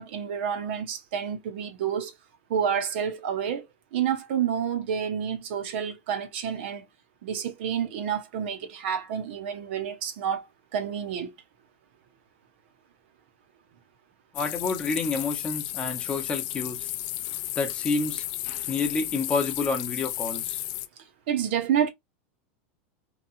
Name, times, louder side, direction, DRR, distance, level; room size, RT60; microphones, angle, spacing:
voice 1, 0.0-2.1 2.5-6.9 7.2-11.3 21.3-21.9, right 8 dB, 70° right, 0.7 m, -29 dB
sound 1, 14.3-20.9, left 15 dB, 55° left, 0.4 m, -33 dB
voice 2, 14.3-16.9 17.5-18.2 18.7-20.6, left 4 dB, 15° left, 0.8 m, -29 dB
2.9 x 2.3 x 2.6 m
supercardioid pair, 145°, 6 cm